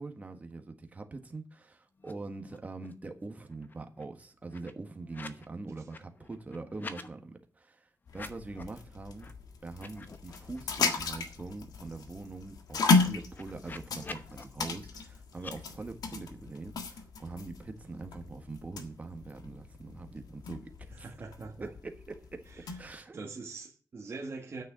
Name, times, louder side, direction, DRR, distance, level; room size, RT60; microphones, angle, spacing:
voice 1, 0.0-7.9 8.1-9.3 9.6-21.1 21.6-22.5 22.8-23.2, right 3 dB, 25° right, 1.4 m, -43 dB
sound 1, 2.0-2.1 2.4-3.1 3.4-5.5 5.8-7.1 8.0-8.8 9.2-9.3 9.7-11.0 11.4-11.5 11.8-14.4 15.3-15.5, left 3 dB, 30° left, 0.9 m, -48 dB
sound 2, 8.1-22.9, left 4 dB, 80° left, 1.6 m, -34 dB
voice 2, 20.9-21.7 22.6-22.8 23.1-24.6, right 3 dB, 40° right, 1.8 m, -42 dB
9.3 x 6.5 x 7.5 m
wide cardioid pair, 170°, 6 cm